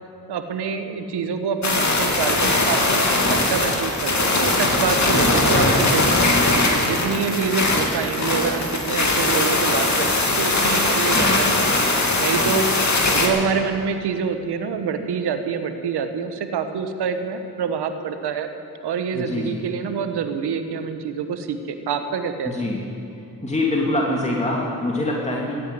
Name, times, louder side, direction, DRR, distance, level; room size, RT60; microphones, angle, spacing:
voice 1, 0.3-6.3 6.8-11.5 12.2-18.5 18.8-22.7, right 6 dB, 85° right, 8 dB, 1.2 m, -26 dB
sound 1, 1.6-13.3, left 2 dB, 45° left, 2.7 m, -20 dB
voice 2, 11.1-11.5 12.4-12.6 19.1-19.6 22.4-22.8 23.4-25.5, left 2 dB, 15° left, -3 dB, 2.6 m, -25 dB
16.0 x 9.2 x 9.4 m, 2.6 s
cardioid pair, 55°, 39 cm